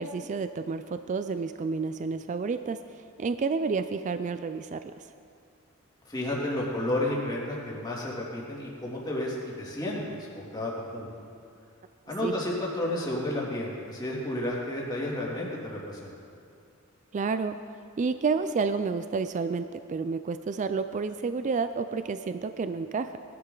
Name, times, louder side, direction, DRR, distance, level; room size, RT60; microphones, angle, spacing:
voice 1, 0.0-4.9 12.2-12.3 17.1-17.6 18.0-23.2, right 4 dB, 35° right, 10 dB, 0.3 m, -30 dB
voice 2, 6.0-11.1 12.1-16.1, left 1 dB, 20° left, -5 dB, 2.6 m, -32 dB
18.5 x 11.5 x 3.9 m, 2.5 s
head